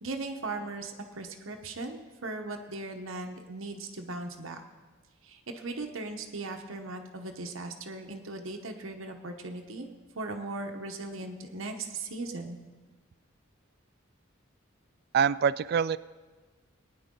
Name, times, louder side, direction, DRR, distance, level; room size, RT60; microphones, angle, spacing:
voice 1, 0.0-4.6 5.2-9.9 10.1-12.6, right 2 dB, 80° right, 4 dB, 1.0 m, -38 dB
voice 2, 15.1-16.0, right 7 dB, 50° right, 18 dB, 0.3 m, -25 dB
20.0 x 9.6 x 3.8 m, 1.3 s
head